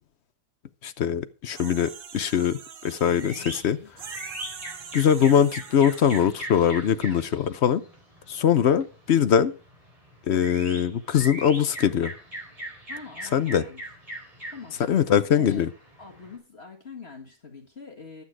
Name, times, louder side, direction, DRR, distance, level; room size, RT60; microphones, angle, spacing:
voice 1, 0.8-3.3 3.6-3.8 4.9-7.8 8.3-9.5 10.3-12.1 13.3-13.6 14.9-15.7, left 8 dB, 55° left, 0.8 m, -22 dB
sound 1, 1.5-3.6 4.0-6.2, right 7 dB, 50° right, 0.7 m, -43 dB
sound 2, 3.1-16.4, right 1 dB, 20° right, 4.7 m, -41 dB
voice 2, 3.2-3.9 12.9-13.8 14.5-14.8 15.3-15.6 16.0-18.2, left 5 dB, 40° left, 2.1 m, -44 dB
12.0 x 8.6 x 4.7 m
omnidirectional pair, 1.7 m